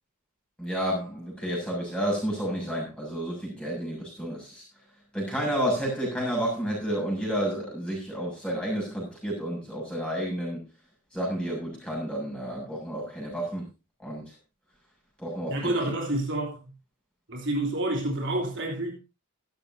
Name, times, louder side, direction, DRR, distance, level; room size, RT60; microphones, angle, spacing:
voice 1, 0.6-4.6 5.1-10.6 11.1-13.6 14.0-14.3 15.2-15.7, equal, 5° left, 6.9 m, -30 dB
voice 2, 15.5-16.6 17.3-18.9, right 1 dB, 55° right, 3.3 m, -28 dB
16.0 x 12.5 x 2.8 m
head